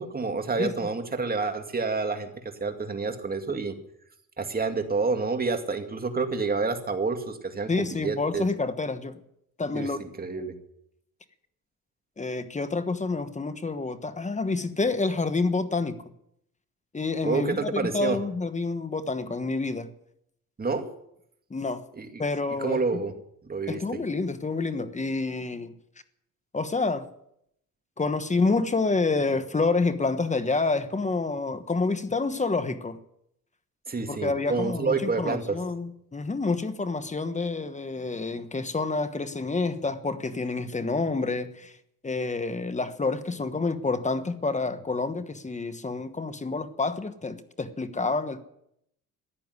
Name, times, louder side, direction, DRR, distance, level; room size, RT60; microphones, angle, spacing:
voice 1, 0.0-3.7 4.4-8.5 9.7-10.5 17.2-18.2 20.6-20.9 21.9-22.1 22.6-23.1 23.5-23.8 33.9-35.6, right 4 dB, 25° right, 2.3 m, -28 dB
voice 2, 7.7-9.2 9.6-10.0 12.2-16.0 16.9-19.9 20.8-20.9 21.5-21.8 22.2-22.8 23.7-25.7 26.5-27.1 28.0-33.0 34.1-41.7 42.0-48.4, left 3 dB, 20° left, 1.2 m, -28 dB
14.5 x 10.5 x 9.7 m
cardioid pair, 100°, 34 cm